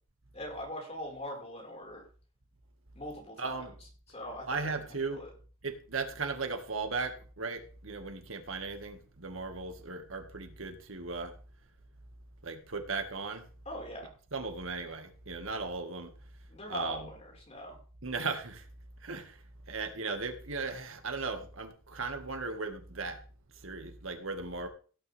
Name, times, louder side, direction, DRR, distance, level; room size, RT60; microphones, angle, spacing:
voice 1, 0.3-2.0 2.9-3.6 4.1-4.7 5.1-5.3 13.6-14.1 16.5-17.8, left 1 dB, 30° left, -1 dB, 4.9 m, -41 dB
voice 2, 3.4-3.7 4.5-5.2 5.6-11.3 12.4-13.4 14.3-16.1 16.7-17.1 18.0-18.6 19.0-19.4 19.7-23.2 23.6-24.7, right 4 dB, 80° right, 6 dB, 1.8 m, -37 dB
17.0 x 9.0 x 3.5 m, 0.40 s
head